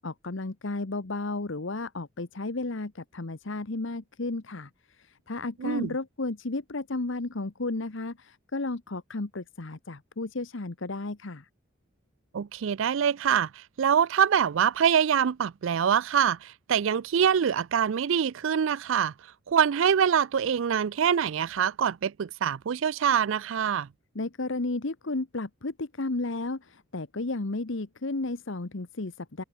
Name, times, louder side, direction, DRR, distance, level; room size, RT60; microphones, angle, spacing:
voice 1, 0.0-11.5 24.1-29.4, left 2 dB, 65° left, 1.1 m, -33 dB
voice 2, 5.6-5.9 12.3-19.1 19.5-23.9, right 8 dB, 65° right, 0.4 m, -25 dB
head